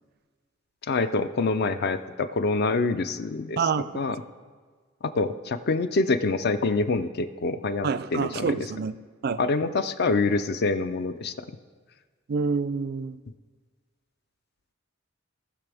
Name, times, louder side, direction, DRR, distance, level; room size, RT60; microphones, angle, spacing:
voice 1, 0.8-3.7 3.9-4.2 5.0-8.6 9.4-11.3, left 3 dB, 50° left, 0.4 m, -26 dB
voice 2, 3.6-4.2 7.8-9.0 9.2-9.4 12.3-13.2, right 5 dB, 50° right, 0.4 m, -27 dB
18.0 x 6.0 x 3.4 m
head